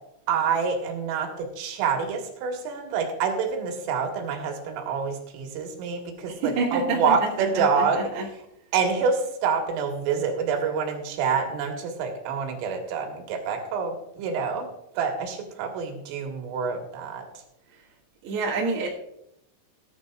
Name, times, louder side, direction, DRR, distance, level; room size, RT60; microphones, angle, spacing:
voice 1, 0.3-8.1 8.7-14.7 15.0-17.3, right 5 dB, 85° right, 2 dB, 4.3 m, -27 dB
voice 2, 6.3-8.2 18.2-18.9, right 4 dB, 65° right, -4 dB, 3.5 m, -28 dB
18.5 x 11.0 x 2.4 m, 0.81 s
omnidirectional pair, 5.6 m